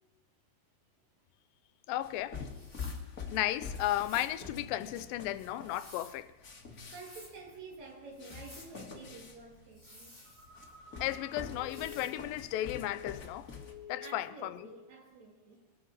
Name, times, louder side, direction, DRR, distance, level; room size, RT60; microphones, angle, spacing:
voice 1, 1.9-2.4 3.3-6.3 11.0-13.5 13.9-14.7, left 14 dB, 80° left, 2.3 m, -34 dB
sound 1, 2.0-13.7, left 5 dB, 50° left, 1.0 m, -46 dB
sound 2, 2.5-3.0 3.7-4.4 5.3-6.2 6.7-7.3 8.1-8.7 9.7-10.7 11.6-12.2, left 1 dB, 5° right, 4.1 m, -54 dB
voice 2, 6.7-10.1 14.0-15.8, right 3 dB, 55° right, 3.3 m, -50 dB
Telephone, 10.2-13.3 13.5-14.2 14.6-14.9, left 6 dB, 75° right, 6.7 m, -50 dB
25.0 x 13.5 x 4.0 m
omnidirectional pair, 4.1 m